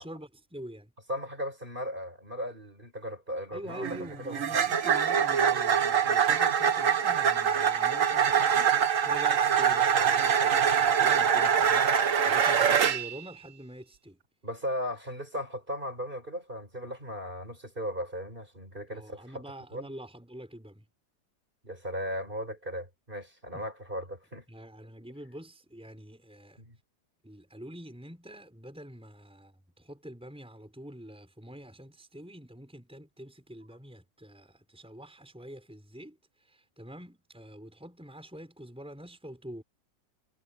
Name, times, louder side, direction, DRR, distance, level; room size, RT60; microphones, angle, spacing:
voice 1, 0.0-0.9 3.5-14.2 18.9-20.9 23.5-23.7 24.5-26.6 27.2-39.6, equal, 5° right, 4.7 m, -46 dB
voice 2, 1.1-4.7 14.4-19.4 19.7-19.9 21.6-24.4 26.6-26.8, equal, 25° right, 5.9 m, -37 dB
sound 1, 3.7-13.2, right 7 dB, 50° right, 1.4 m, -24 dB
omnidirectional pair, 2.0 m